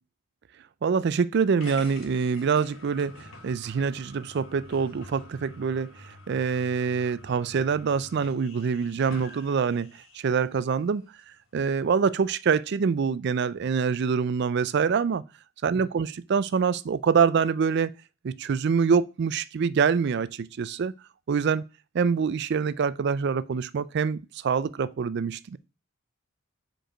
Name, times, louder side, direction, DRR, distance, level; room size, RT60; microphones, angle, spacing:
voice 1, 0.8-5.9 6.3-9.9 10.1-11.1 11.5-15.2 15.6-17.9 18.2-20.9 21.3-21.6 21.9-25.6, right 6 dB, 50° right, 0.3 m, -25 dB
sound 1, 1.6-10.3, left 2 dB, 70° left, 1.7 m, -47 dB
5.1 x 4.6 x 4.9 m
head